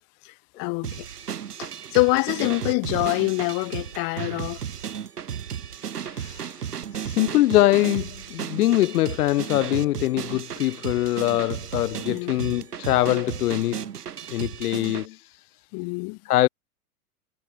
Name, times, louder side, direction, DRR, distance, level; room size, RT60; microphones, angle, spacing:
voice 1, 0.2-1.1 1.6-4.6 12.1-12.3 15.7-16.2, left 33 dB, 50° left, 4.0 m, -25 dB
sound 1, 0.8-15.1, right 8 dB, 90° right, 4.2 m, -34 dB
voice 2, 6.0-6.6 6.9-13.9 14.3-15.4 16.3-16.5, left 16 dB, 80° left, 0.7 m, -23 dB
hypercardioid pair, 115°, 45 cm